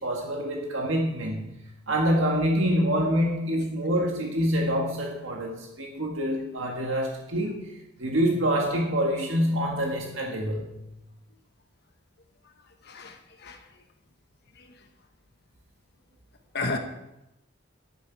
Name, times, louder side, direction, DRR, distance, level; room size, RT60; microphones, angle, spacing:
voice 1, 0.0-1.5 1.9-7.6 8.0-10.8, equal, 80° right, 0 dB, 1.7 m, -26 dB
voice 2, 12.8-13.6 14.6-14.7 16.5-16.8, left 3 dB, 55° left, 5 dB, 1.1 m, -33 dB
11.0 x 10.5 x 4.6 m, 0.90 s
head